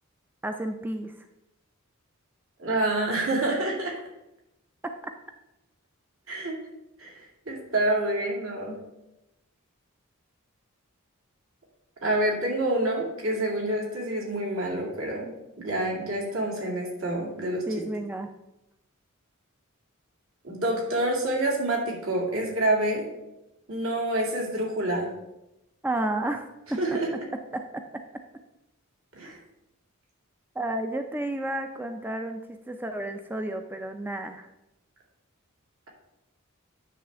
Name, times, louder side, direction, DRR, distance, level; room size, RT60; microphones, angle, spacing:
voice 1, 0.4-1.1 17.7-18.3 25.8-26.8 27.5-27.8 30.6-34.5, right 1 dB, 10° right, 5 dB, 0.4 m, -31 dB
voice 2, 2.6-4.0 6.3-6.6 7.0-8.8 12.0-15.3 15.6-17.6 20.4-23.1 23.7-25.1 26.8-27.1 29.1-29.4, right 1 dB, 75° right, -2 dB, 2.4 m, -27 dB
9.3 x 3.3 x 6.7 m, 0.91 s
head